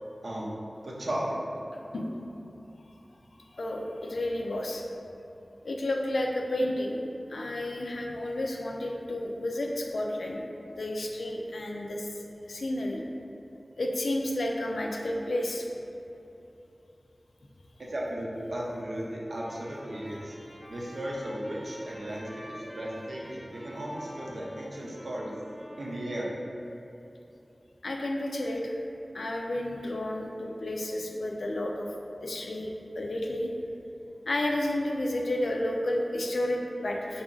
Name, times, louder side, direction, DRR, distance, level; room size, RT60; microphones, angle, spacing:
voice 1, 0.8-1.6 17.8-20.4 20.7-25.4 25.8-26.3, right 1 dB, 70° right, -4 dB, 0.6 m, -35 dB
voice 2, 1.9-2.2 3.4-4.9 5.6-7.0 7.3-10.4 10.7-12.1 12.5-13.2 13.8-15.7 27.8-28.8 29.1-31.9 32.2-32.7 33.0-33.5 34.3-37.2, left 1 dB, 90° left, 0 dB, 0.4 m, -31 dB
Trumpet, 19.3-26.4, equal, 15° left, 0.6 m, -49 dB
4.0 x 2.4 x 3.7 m, 2.8 s
wide cardioid pair, 70°, 0 cm